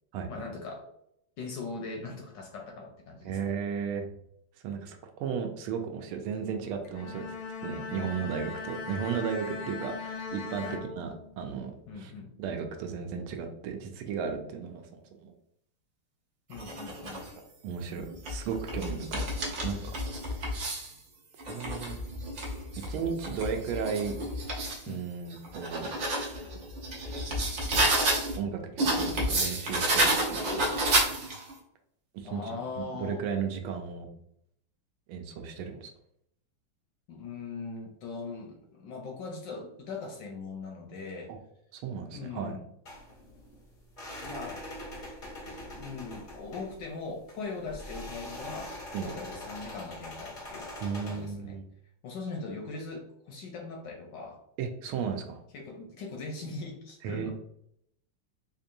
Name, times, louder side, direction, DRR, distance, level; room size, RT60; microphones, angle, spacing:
voice 1, 0.3-0.9 1.4-3.4 10.6-10.8 11.9-12.3 16.5-17.2 24.9-25.0 32.2-33.2 37.1-41.3 42.1-42.6 44.2-44.6 45.4-48.7 49.0-51.6 52.0-54.4 55.5-57.3, left 4 dB, 70° left, 1 dB, 1.2 m, -40 dB
voice 2, 3.2-4.1 4.6-7.3 7.6-12.1 12.4-15.3 17.6-19.9 20.3-20.6 21.5-22.0 22.8-24.2 24.9-25.9 28.3-30.7 32.1-34.1 35.1-35.9 41.3-41.4 41.7-42.6 48.9-49.1 50.8-51.7 54.6-55.4 57.0-57.3, right 6 dB, 80° right, 5 dB, 1.4 m, -35 dB
Bowed string instrument, 6.8-11.5, left 5 dB, 85° left, 1.6 m, -39 dB
sound 1, 16.5-17.3 18.0-20.9 21.4-24.8 25.3-28.4 28.8-31.5, right 1 dB, 55° right, 0.9 m, -30 dB
sound 2, 42.8-51.3, left 1 dB, 55° left, 0.5 m, -43 dB
4.6 x 2.7 x 2.6 m, 0.73 s
omnidirectional pair, 2.4 m